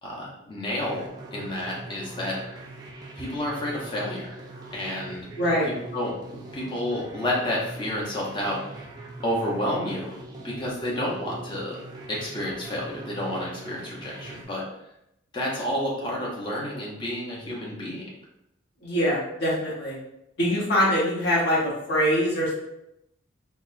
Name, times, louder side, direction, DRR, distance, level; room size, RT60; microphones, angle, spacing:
voice 1, 0.0-1.0 1.3-2.6 3.2-4.4 4.7-5.3 5.6-8.8 9.2-10.1 10.4-11.8 12.1-14.6 15.3-18.0, left 1 dB, 25° left, -4 dB, 0.8 m, -30 dB
sound 1, 0.8-14.4, right 2 dB, 20° right, 0.3 m, -42 dB
voice 2, 5.4-5.7 18.8-20.0 20.4-22.5, equal, 55° left, -6 dB, 1.0 m, -23 dB
4.1 x 2.1 x 2.5 m, 0.83 s
head